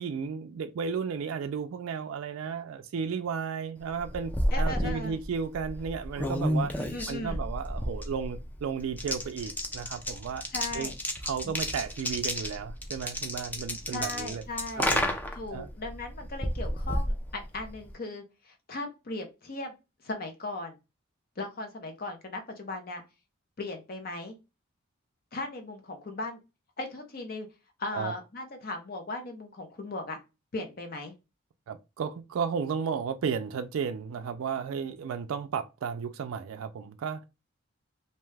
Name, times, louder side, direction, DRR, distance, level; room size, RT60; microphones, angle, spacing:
voice 1, 0.0-6.7 7.1-10.4 10.7-10.9 11.2-14.4 14.8-15.1 15.5-15.7 27.9-28.1 31.7-37.2, right 6 dB, 75° right, 0.3 m, -33 dB
sound 1, 3.9-17.9, left 1 dB, 10° left, 0.3 m, -32 dB
voice 2, 4.5-5.2 6.8-7.4 10.5-10.9 11.4-11.5 13.9-14.9 15.4-19.7 20.0-20.8 21.4-23.0 23.6-24.3 25.3-26.4 26.8-27.5 27.8-30.2 30.5-31.1, left 2 dB, 45° left, 0.6 m, -37 dB
2.7 x 2.2 x 3.2 m
head